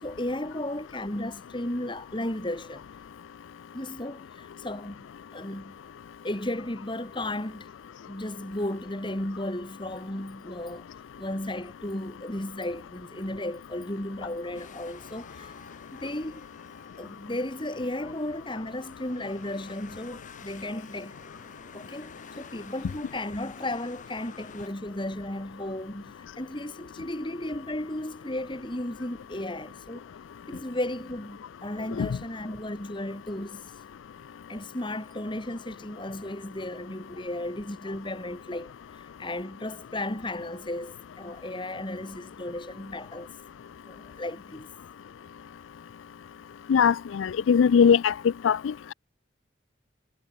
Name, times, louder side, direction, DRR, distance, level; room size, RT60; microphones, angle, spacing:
voice 1, 0.0-2.9 3.7-5.1 5.3-5.8 6.2-7.7 8.1-10.9 11.2-15.5 15.9-16.4 17.0-21.1 21.7-30.0 30.5-33.7 34.5-43.3 43.8-44.7, left 1 dB, 25° left, 2.5 m, -34 dB
sound 1, 14.5-24.7, left 4 dB, 40° left, 6.1 m, -50 dB
voice 2, 46.7-48.1 48.4-48.9, left 7 dB, 85° left, 0.4 m, -21 dB
head